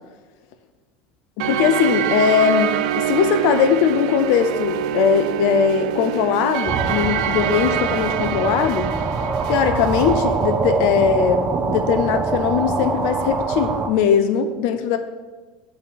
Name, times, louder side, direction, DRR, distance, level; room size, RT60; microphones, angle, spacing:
voice 1, 1.4-8.9 9.5-15.0, left 7 dB, 70° left, 8 dB, 0.7 m, -20 dB
sound 1, 1.4-10.2, right 10 dB, 75° right, 0.3 m, -25 dB
sound 2, 6.7-13.9, right 4 dB, 40° right, 1.1 m, -24 dB
8.9 x 4.2 x 7.1 m, 1.3 s
hypercardioid pair, 85°, 4 cm